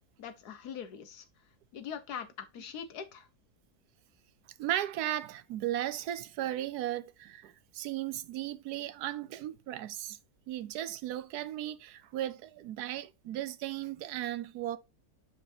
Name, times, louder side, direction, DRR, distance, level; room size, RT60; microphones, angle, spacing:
voice 1, 0.2-1.2 1.7-3.3, left 7 dB, 85° left, 1.6 m, -42 dB
voice 2, 4.6-10.2 10.5-14.8, right 13 dB, 85° right, 1.2 m, -36 dB
7.7 x 5.4 x 2.7 m
omnidirectional pair, 1.6 m